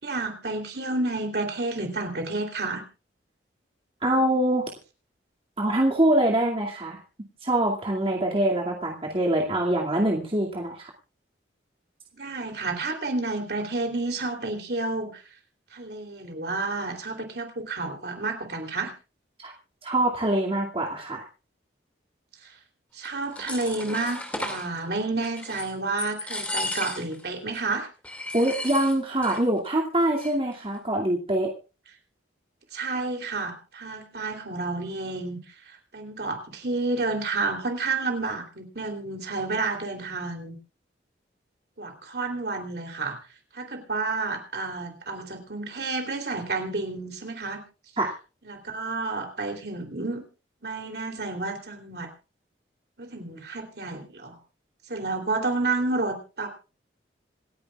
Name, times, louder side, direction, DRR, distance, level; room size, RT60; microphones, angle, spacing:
voice 1, 0.0-2.8 12.1-15.2 15.7-18.9 22.4-22.6 22.9-27.9 32.7-35.4 35.7-40.6 41.8-43.2 43.5-47.6 48.4-50.2 50.6-52.1 53.0-54.4 54.9-56.5, right 3 dB, 55° right, 4 dB, 3.2 m, -30 dB
voice 2, 4.0-4.7 5.6-7.0 7.4-10.9 19.4-19.5 19.8-21.2 28.3-31.5 48.0-48.1, right 1 dB, 30° right, -2 dB, 2.3 m, -24 dB
sound 1, 23.0-24.7 25.2-25.7 26.0-27.2 27.5-27.6 28.0-29.4 29.6-29.7 30.0-30.5, left 2 dB, 10° left, 2.2 m, -34 dB
27.0 x 10.5 x 2.4 m, 0.34 s
head